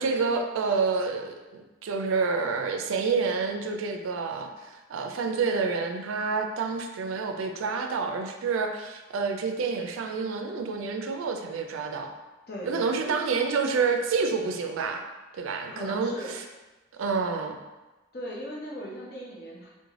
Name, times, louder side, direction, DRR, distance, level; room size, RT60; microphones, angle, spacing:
voice 1, 0.0-12.1 12.6-15.0 15.4-16.4 17.0-17.6, right 4 dB, 80° right, 5 dB, 0.4 m, -28 dB
voice 2, 12.5-13.4 15.7-16.3 18.1-19.7, equal, 50° left, -4 dB, 0.8 m, -38 dB
3.2 x 2.1 x 3.6 m, 1.1 s
head